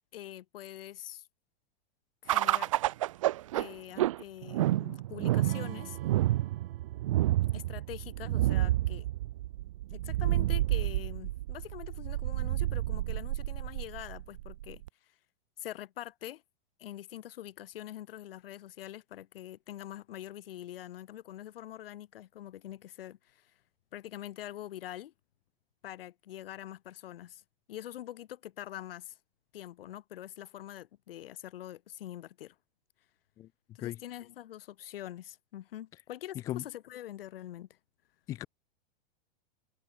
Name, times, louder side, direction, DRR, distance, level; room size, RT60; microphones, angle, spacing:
voice 1, 0.1-1.3 2.2-2.7 3.5-6.0 7.5-9.1 9.9-14.8 15.6-16.4 16.8-23.5 23.9-25.1 25.8-27.4 27.7-29.2 29.5-32.5 33.7-37.7, left 12 dB, 75° left, 1.2 m, -44 dB
sound 1, 2.3-14.9, right 15 dB, 35° right, 0.4 m, -30 dB
Acoustic guitar / Strum, 5.4-8.7, right 13 dB, 80° right, 0.9 m, -46 dB
voice 2, 33.4-33.5 33.8-34.0 36.3-36.6 38.3-38.5, left 14 dB, 10° left, 0.5 m, -36 dB
supercardioid pair, 175°, 29 cm